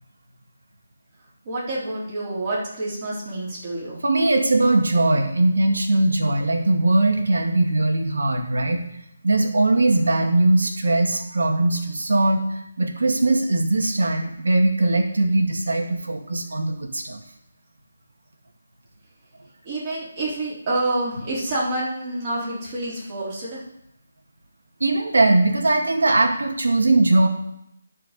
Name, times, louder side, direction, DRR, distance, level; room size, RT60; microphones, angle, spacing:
voice 1, 1.5-4.0 19.6-23.6, right 2 dB, 30° right, -6 dB, 3.8 m, -28 dB
voice 2, 4.0-8.8 9.2-17.2 24.8-27.3, right 2 dB, 80° right, 4 dB, 2.0 m, -20 dB
11.0 x 4.8 x 6.8 m, 0.79 s
hypercardioid pair, 165°, 0 cm